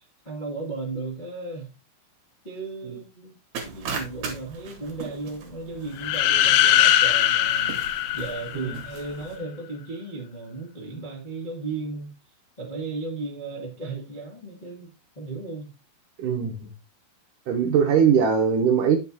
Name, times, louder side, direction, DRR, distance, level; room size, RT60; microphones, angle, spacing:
voice 1, 0.0-1.7 2.4-3.4 3.6-7.8 8.1-12.1 12.6-15.7, right 3 dB, 55° left, 0.5 m, -35 dB
sound 1, 3.5-9.4, right 5 dB, 55° right, 2.6 m, -39 dB
sound 2, 6.0-8.9, left 12 dB, 85° left, 2.0 m, -21 dB
voice 2, 16.2-16.7 17.5-19.0, right 7 dB, 75° right, 2.1 m, -21 dB
9.6 x 6.4 x 2.8 m
omnidirectional pair, 4.7 m